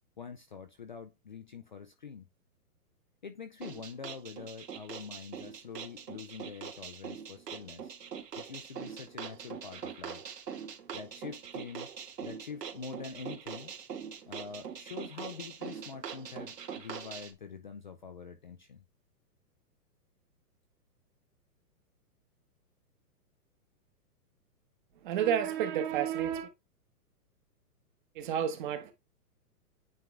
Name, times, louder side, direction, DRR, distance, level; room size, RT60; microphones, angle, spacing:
voice 1, 0.2-2.3 3.2-8.0 8.4-10.2 10.9-11.9 12.2-13.7 14.3-18.8, left 6 dB, 30° left, 0.5 m, -45 dB
sound 1, 3.6-17.3, right 7 dB, 90° right, 2.5 m, -43 dB
voice 2, 25.0-26.5 28.1-28.9, right 9 dB, 30° right, 1.3 m, -30 dB
9.3 x 3.7 x 3.2 m
hypercardioid pair, 165°, 47 cm